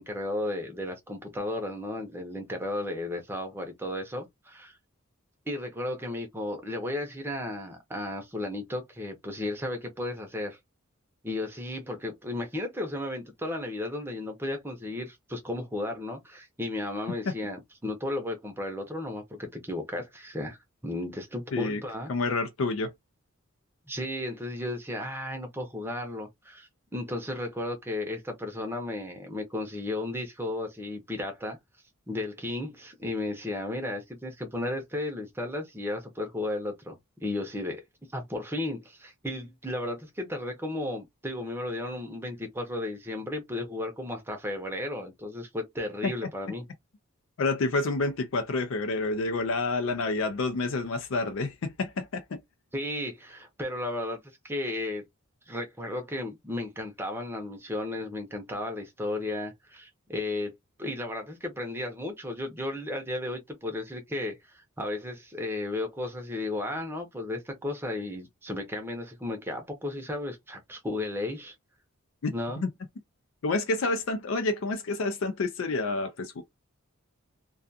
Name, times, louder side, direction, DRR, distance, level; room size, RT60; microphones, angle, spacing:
voice 1, 0.0-4.8 5.5-10.6 11.2-22.1 23.9-31.6 32.1-37.8 38.1-46.6 52.7-54.2 54.4-55.0 55.5-60.5 60.8-71.6 72.3-72.6, left 1 dB, 10° right, 0.6 m, -34 dB
voice 2, 22.1-22.9 47.4-52.2 72.2-72.7 73.4-76.4, left 3 dB, 65° left, 0.4 m, -28 dB
2.4 x 2.3 x 2.6 m
head